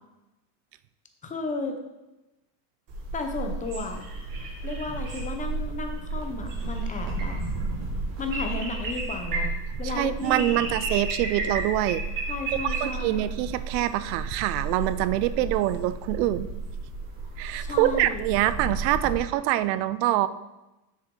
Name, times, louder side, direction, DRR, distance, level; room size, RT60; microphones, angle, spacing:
voice 1, 1.2-1.8 3.1-4.0 4.6-7.4 8.2-9.5 9.8-10.7 12.3-13.3 17.6-18.2, left 3 dB, 15° left, 5 dB, 0.7 m, -33 dB
sound 1, 2.9-19.2, right 3 dB, 40° right, 2.0 m, -32 dB
voice 2, 9.8-12.0 12.6-16.5 17.4-20.3, right 14 dB, 80° right, 15 dB, 0.6 m, -25 dB
6.7 x 6.3 x 3.8 m, 1.0 s
supercardioid pair, 135°, 49 cm